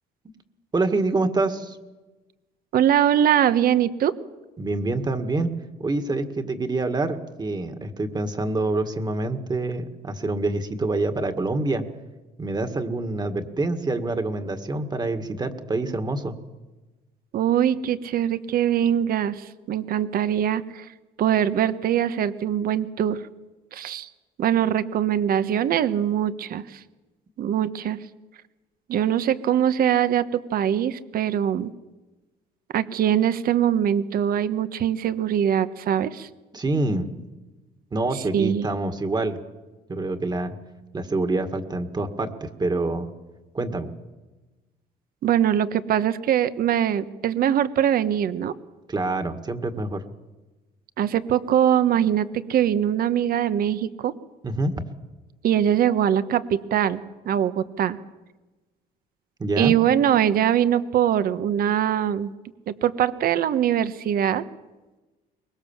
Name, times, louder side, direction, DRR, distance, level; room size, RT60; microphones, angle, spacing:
voice 1, 0.7-1.8 4.6-5.5 5.8-11.8 12.4-16.4 36.5-37.1 37.9-39.4 39.9-40.6 40.9-43.1 43.5-43.9 48.9-50.0 54.4-54.8 59.4-59.7, right 2 dB, 25° right, 8 dB, 2.0 m, -26 dB
voice 2, 2.7-4.2 17.3-20.9 21.2-23.2 23.7-24.1 24.4-26.8 27.4-28.0 28.9-31.7 32.7-36.3 38.3-38.7 45.2-48.5 51.0-54.1 55.4-58.0 59.6-62.3 62.7-64.4, right 10 dB, 60° right, 13 dB, 1.2 m, -22 dB
23.5 x 20.5 x 7.3 m, 1.2 s
cardioid pair, 110°, 17 cm